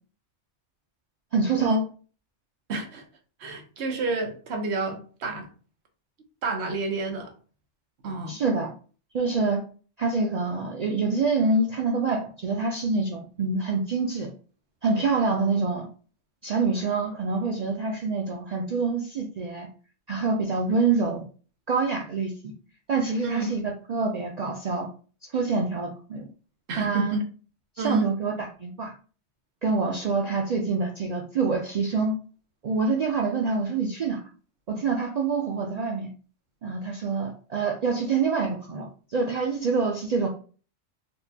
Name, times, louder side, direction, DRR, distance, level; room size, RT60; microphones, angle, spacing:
voice 1, 1.3-1.8 8.3-8.7 9.1-9.6 10.0-14.3 14.8-15.9 16.4-19.7 20.1-21.2 21.7-22.3 22.9-24.9 25.3-26.3 26.8-27.2 27.8-28.9 29.6-32.2 32.6-34.2 34.7-36.1 36.6-40.3, right 4 dB, 90° right, 0 dB, 0.3 m, -26 dB
voice 2, 2.7-3.0 3.4-5.5 6.4-7.3 8.0-8.4 23.2-23.6 26.7-27.2 27.8-28.1, right 3 dB, 60° right, 3 dB, 1.0 m, -29 dB
4.4 x 2.2 x 2.7 m, 0.38 s
omnidirectional pair, 1.3 m